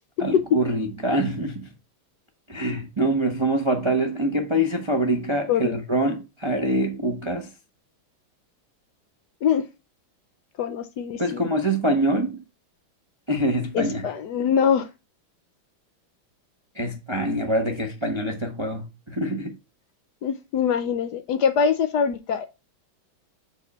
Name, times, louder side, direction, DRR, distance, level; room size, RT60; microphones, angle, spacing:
voice 1, 0.2-1.7 2.5-7.5 11.2-12.4 13.3-14.1 16.7-19.5, right 1 dB, 40° right, 0.4 m, -25 dB
voice 2, 10.6-11.5 13.7-14.9 20.2-22.5, left 7 dB, 70° left, 1.0 m, -23 dB
7.2 x 3.5 x 5.4 m
omnidirectional pair, 2.2 m